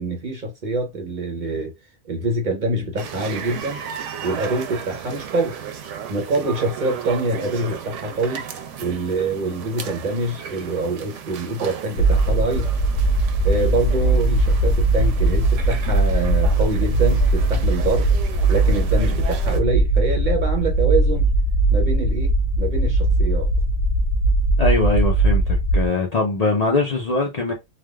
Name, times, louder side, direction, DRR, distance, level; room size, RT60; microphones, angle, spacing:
voice 1, 0.0-1.7 2.1-3.8 4.2-5.5 6.1-8.4 8.8-12.7 13.4-18.1 18.5-21.3 21.7-23.5, right 2 dB, 50° right, 0.7 m, -25 dB
sound 1, 3.0-19.6, right 8 dB, 90° right, 0.9 m, -35 dB
sound 2, 12.0-25.9, right 2 dB, 85° left, 0.9 m, -19 dB
voice 2, 24.6-27.5, left 3 dB, 45° left, 0.6 m, -22 dB
3.3 x 2.2 x 2.2 m
omnidirectional pair, 1.2 m